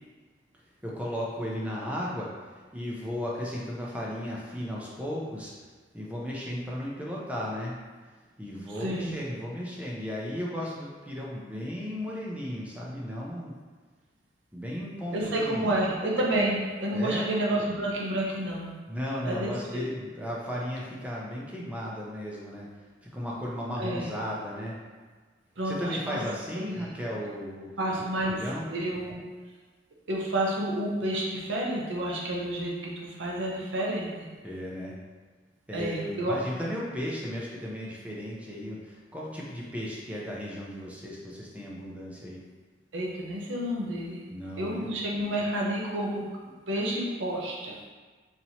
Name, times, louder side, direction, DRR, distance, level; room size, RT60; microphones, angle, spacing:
voice 1, 0.8-5.5 5.9-7.8 8.4-13.5 14.5-15.7 16.9-17.3 18.9-22.7 23.0-24.8 25.6-27.7 28.3-28.7 34.4-35.0 35.7-42.4 44.3-44.9, equal, 10° right, -4 dB, 0.5 m, -35 dB
voice 2, 8.7-9.1 15.1-18.7 19.2-19.9 23.8-24.1 25.6-26.2 26.5-26.9 27.8-29.2 30.1-34.3 35.7-36.4 42.9-44.2 44.6-46.3 46.7-47.7, right 1 dB, 85° right, -3 dB, 0.8 m, -30 dB
4.2 x 2.9 x 2.7 m, 1.4 s
head